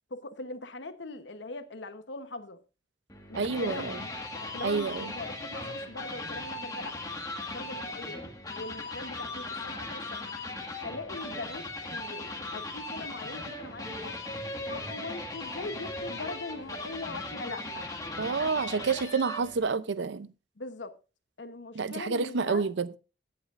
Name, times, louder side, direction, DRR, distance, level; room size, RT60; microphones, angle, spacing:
voice 1, 0.1-2.6 3.3-3.9 4.3-7.0 7.5-8.3 8.6-10.3 10.8-11.7 11.9-14.2 14.7-17.9 20.6-20.9 21.4-22.7, left 2 dB, 80° left, 1.0 m, -41 dB
sound 1, 3.1-19.6, left 2 dB, 20° left, 1.6 m, -38 dB
voice 2, 3.3-3.9 4.6-5.1 18.2-20.3 21.8-22.9, right 4 dB, 75° right, 0.6 m, -29 dB
16.5 x 7.9 x 2.5 m
head